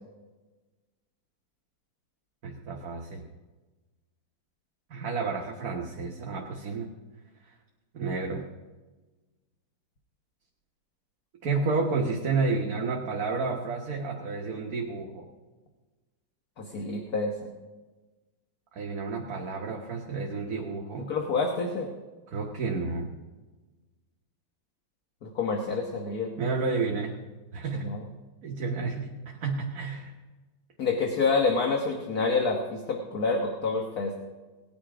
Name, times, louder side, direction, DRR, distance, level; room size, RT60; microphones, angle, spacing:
voice 1, 2.4-3.2 4.9-6.9 7.9-8.4 11.4-15.3 18.7-21.1 22.3-23.1 26.4-27.1 27.5-27.9 28.4-30.1, right 4 dB, 55° right, -1 dB, 1.7 m, -31 dB
voice 2, 16.6-17.3 21.1-21.9 25.2-26.3 27.8-28.0 30.8-34.1, left 4 dB, 55° left, 2 dB, 1.7 m, -27 dB
19.0 x 10.5 x 5.0 m, 1.2 s
omnidirectional pair, 2.0 m